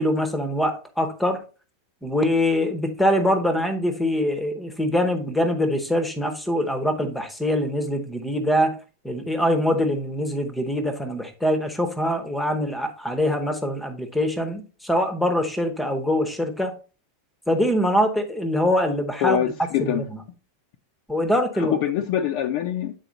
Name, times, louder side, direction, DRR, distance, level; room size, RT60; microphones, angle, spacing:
voice 1, 0.0-1.4 2.0-8.8 9.0-16.8 17.5-19.4 19.8-20.0 21.1-21.8, left 1 dB, 5° left, 0.8 m, -23 dB
voice 2, 19.2-20.0 21.6-22.9, left 10 dB, 45° left, 0.6 m, -24 dB
8.4 x 4.1 x 3.9 m
supercardioid pair, 170°, 0 cm